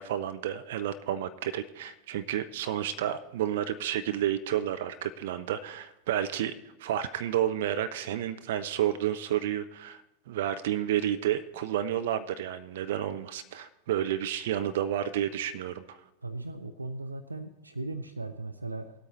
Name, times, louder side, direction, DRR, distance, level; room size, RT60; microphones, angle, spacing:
voice 1, 0.0-6.5 6.8-10.0 10.3-16.0, right 11 dB, 55° right, 10 dB, 0.8 m, -30 dB
voice 2, 16.2-18.9, right 2 dB, 80° right, 9 dB, 0.7 m, -37 dB
20.0 x 8.6 x 3.2 m, 0.91 s
figure-of-eight pair, 90°, 0 cm